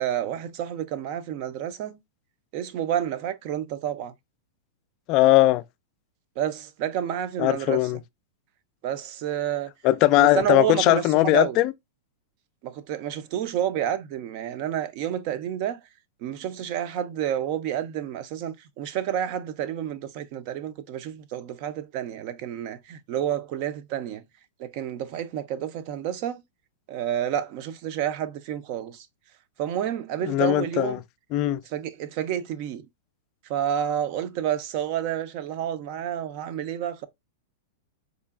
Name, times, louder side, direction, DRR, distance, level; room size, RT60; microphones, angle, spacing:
voice 1, 0.0-2.0 2.5-4.1 6.4-7.8 8.8-9.7 10.2-11.6 12.6-15.8 16.2-24.2 24.6-26.4 26.9-29.1 29.6-31.0 31.7-32.9 33.5-37.1, right 10 dB, 40° right, 0.5 m, -29 dB
voice 2, 5.1-5.6 7.4-8.0 9.8-11.7 30.2-31.0 31.3-31.6, left 16 dB, 35° left, 0.3 m, -20 dB
3.8 x 3.2 x 2.4 m
supercardioid pair, 155°, 0 cm